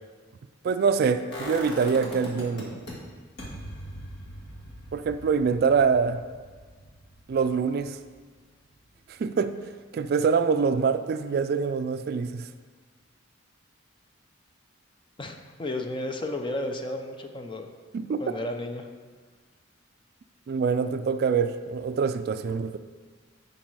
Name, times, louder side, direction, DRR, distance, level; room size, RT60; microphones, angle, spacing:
voice 1, 0.6-2.8 4.9-6.2 7.3-8.0 9.1-12.5 17.9-18.2 20.5-22.8, right 5 dB, 50° right, 10 dB, 0.3 m, -25 dB
sound 1, 1.3-2.9 3.4-9.2 9.5-9.6, equal, 60° left, 1.7 m, -42 dB
voice 2, 15.2-17.7 18.2-18.9, left 1 dB, 25° left, 4 dB, 0.6 m, -33 dB
10.5 x 4.1 x 4.7 m, 1.5 s
head